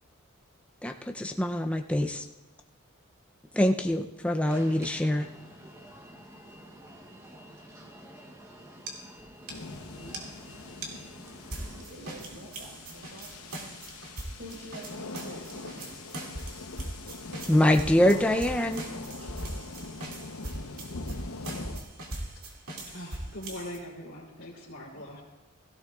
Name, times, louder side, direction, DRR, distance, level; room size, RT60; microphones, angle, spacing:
voice 1, 0.8-2.3 3.5-5.3 17.5-18.8, left 1 dB, 5° left, 4 dB, 0.4 m, -24 dB
Alarm, 4.5-11.8, right 1 dB, 10° right, 0.8 m, -49 dB
sound 1, 8.9-9.0 9.2-9.3 9.5-9.6 10.1-10.2 10.8-10.9 11.5-23.8, right 1 dB, 75° right, 2.3 m, -40 dB
sound 2, 9.5-21.8, left 3 dB, 75° left, 0.9 m, -42 dB
voice 2, 11.5-13.6 14.0-16.0 19.2-19.3, right 1 dB, 55° right, -2 dB, 4.5 m, -47 dB
voice 3, 22.9-25.2, left 1 dB, 60° left, -8 dB, 2.9 m, -41 dB
16.5 x 15.5 x 2.4 m, 1.1 s
head